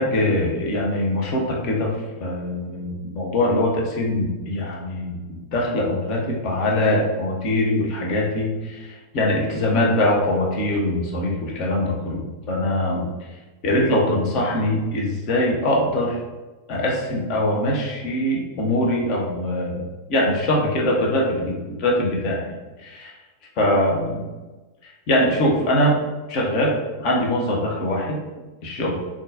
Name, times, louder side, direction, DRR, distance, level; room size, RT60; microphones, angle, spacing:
voice 1, 0.0-5.2 5.5-13.1 13.6-16.2 16.7-23.1 23.6-24.3 24.8-26.0 26.3-28.2 28.6-29.0, left 1 dB, 40° left, -2 dB, 0.7 m, -22 dB
3.8 x 2.3 x 2.6 m, 1.2 s
figure-of-eight pair, 90°, 0 cm